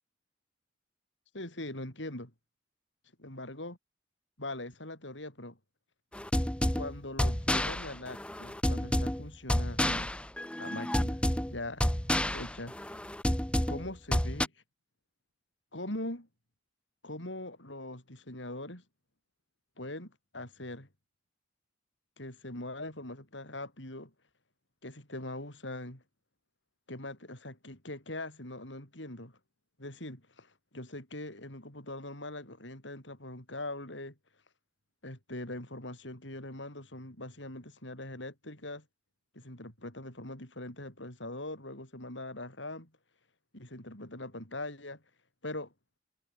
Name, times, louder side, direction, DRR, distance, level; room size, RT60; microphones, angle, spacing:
voice 1, 1.3-2.3 3.2-3.8 4.4-5.6 6.7-10.1 10.6-11.2 11.5-11.9 12.3-12.8 13.7-14.5 15.7-16.3 17.0-18.8 19.8-20.9 22.2-24.1 24.8-26.0 26.9-29.4 29.8-34.2 35.0-38.9 39.3-42.9 43.5-45.0 45.4-45.7, left 1 dB, 80° left, 7.3 m, -42 dB
sound 1, 6.1-14.5, left 1 dB, 5° left, 0.7 m, -30 dB
head